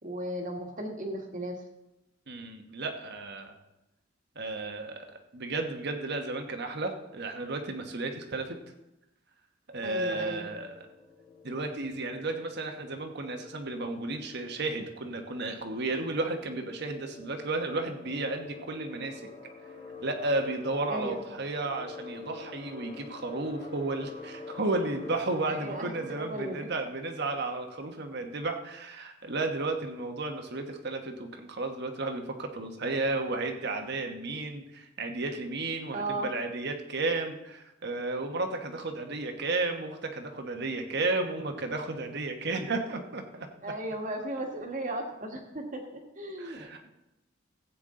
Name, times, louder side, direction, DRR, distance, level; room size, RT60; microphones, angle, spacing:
voice 1, 0.0-1.6 9.8-10.4 20.9-21.2 25.4-25.9 26.2-26.7 35.9-36.3 43.6-46.9, right 1 dB, 40° right, 3 dB, 1.6 m, -36 dB
voice 2, 2.3-3.5 4.3-5.1 5.3-8.6 9.7-10.8 11.4-19.3 20.0-43.5 46.4-46.9, right 2 dB, 60° right, 5 dB, 1.2 m, -33 dB
sound 1, 10.3-26.8, left 3 dB, 35° left, 1.7 m, -47 dB
15.5 x 8.4 x 3.7 m, 0.95 s
head